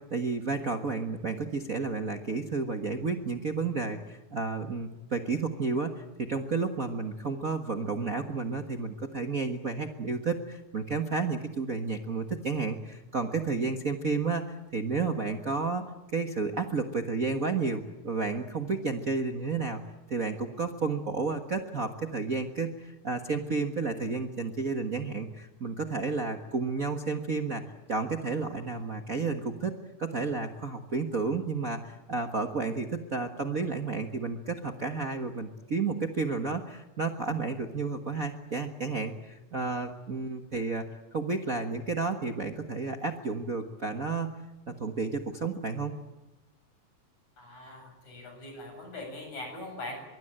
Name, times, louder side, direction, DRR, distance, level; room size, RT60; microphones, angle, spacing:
voice 1, 0.0-15.8 16.1-19.8 20.1-27.6 27.9-40.8 41.1-44.3 44.7-45.9, right 4 dB, 40° right, 4 dB, 1.3 m, -31 dB
voice 2, 47.4-50.0, left 2 dB, 75° left, 3 dB, 9.0 m, -41 dB
24.0 x 24.0 x 8.9 m, 1.0 s
omnidirectional pair, 3.4 m